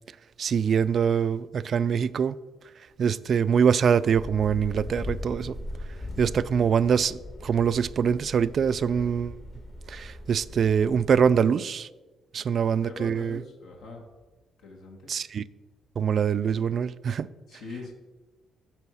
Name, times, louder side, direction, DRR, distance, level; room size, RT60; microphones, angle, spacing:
voice 1, 0.4-2.4 3.0-5.6 6.2-9.3 9.9-11.9 12.3-13.4 15.1-15.4 16.0-17.3, right 7 dB, 55° right, 0.3 m, -24 dB
sound 1, 4.1-11.3, left 1 dB, 55° left, 2.1 m, -39 dB
voice 2, 12.8-14.0 14.6-15.0 17.5-17.9, left 3 dB, 80° left, 1.4 m, -41 dB
8.6 x 4.6 x 6.2 m
cardioid pair, 90°, 0 cm